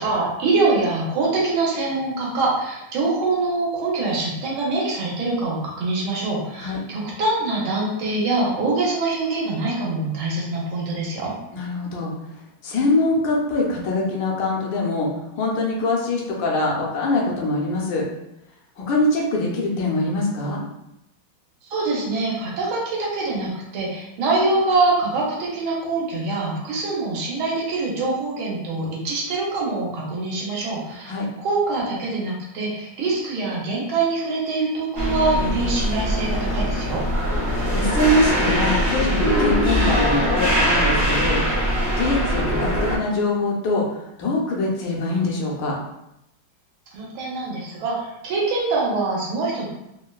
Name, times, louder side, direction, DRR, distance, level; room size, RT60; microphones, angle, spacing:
voice 1, 0.0-11.3 21.7-31.1 31.4-37.0 46.9-49.7, right 3 dB, 80° right, -4 dB, 1.6 m, -24 dB
voice 2, 11.5-12.1 12.6-15.1 15.4-18.0 18.8-20.6 31.0-31.3 37.7-41.4 42.0-43.8 44.2-45.8, left 2 dB, 70° left, -2 dB, 1.3 m, -23 dB
sound 1, 34.9-43.0, equal, 60° right, 0.6 m, -22 dB
3.7 x 2.1 x 2.2 m, 0.86 s
omnidirectional pair, 2.2 m